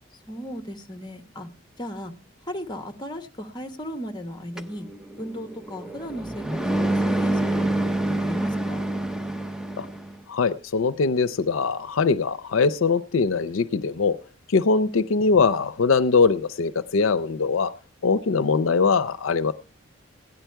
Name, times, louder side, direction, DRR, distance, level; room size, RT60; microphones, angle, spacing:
voice 1, 0.3-1.5 1.8-2.1 2.4-4.9 5.2-8.9 14.8-15.0, equal, 20° left, 8 dB, 1.3 m, -36 dB
sound 1, 4.6-10.2, right 1 dB, 5° right, 0.6 m, -27 dB
voice 2, 10.3-14.2 14.5-17.7 18.0-19.5, left 4 dB, 80° left, 14 dB, 0.5 m, -22 dB
16.5 x 10.0 x 4.6 m, 0.39 s
head